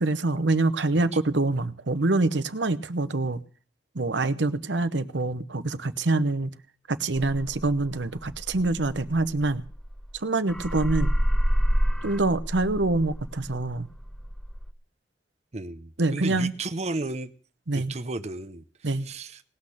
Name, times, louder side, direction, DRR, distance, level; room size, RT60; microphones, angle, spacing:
voice 1, 0.0-3.4 3.9-6.5 6.9-9.6 10.2-11.1 12.0-13.9 16.0-16.5 17.7-17.9 18.8-19.1, right 2 dB, 85° right, 1.0 m, -25 dB
sound 1, 7.1-10.2 10.5-14.7, equal, 5° left, 0.9 m, -28 dB
voice 2, 15.5-17.3 17.7-18.6 19.0-19.4, right 2 dB, 40° right, 0.8 m, -33 dB
19.0 x 6.4 x 10.0 m
head